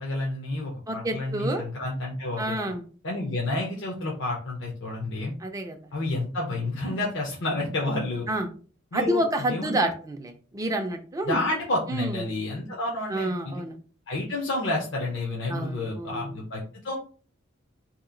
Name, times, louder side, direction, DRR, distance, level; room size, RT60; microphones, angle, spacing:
voice 1, 0.0-2.6 3.0-5.3 5.9-8.3 8.9-9.2 9.5-9.8 11.2-13.6 14.1-17.0, left 2 dB, 60° left, -2 dB, 0.7 m, -30 dB
voice 2, 0.9-1.6 2.4-2.8 5.4-5.9 8.3-8.5 8.9-11.4 11.9-12.3 13.1-13.8 15.5-16.4, right 1 dB, 15° right, 4 dB, 0.4 m, -29 dB
2.8 x 2.4 x 3.7 m, 0.40 s
head